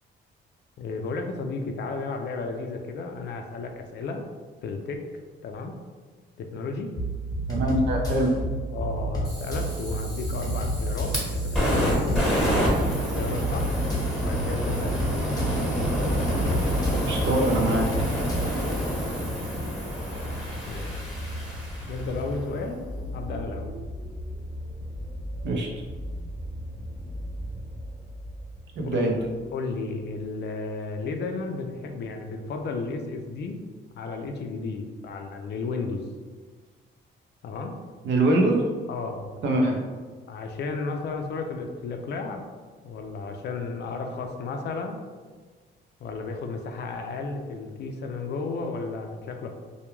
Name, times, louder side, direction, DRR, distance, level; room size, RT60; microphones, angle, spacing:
voice 1, 0.8-4.2 4.6-5.1 5.4-5.8 6.4-7.0 8.7-12.3 12.9-13.9 14.2-15.2 20.7-21.1 21.9-23.7 28.8-29.1 29.5-33.6 33.9-36.1 37.4-37.8 38.9-39.4 40.3-42.4 42.8-45.0 46.0-49.5, left 3 dB, 60° left, 4 dB, 0.4 m, -33 dB
sound 1, 7.0-18.7, right 1 dB, 20° left, 0.7 m, -30 dB
voice 2, 7.5-8.3 17.1-17.9 25.4-25.7 28.8-29.2 38.0-38.6 39.4-39.8, right 1 dB, 65° right, 1 dB, 0.6 m, -23 dB
Fire, 9.2-22.4, equal, ahead, 1.0 m, -28 dB
sound 2, 14.0-29.4 30.2-30.3, equal, 25° right, 0.6 m, -37 dB
2.2 x 2.2 x 3.0 m, 1.4 s
cardioid pair, 90°, 20 cm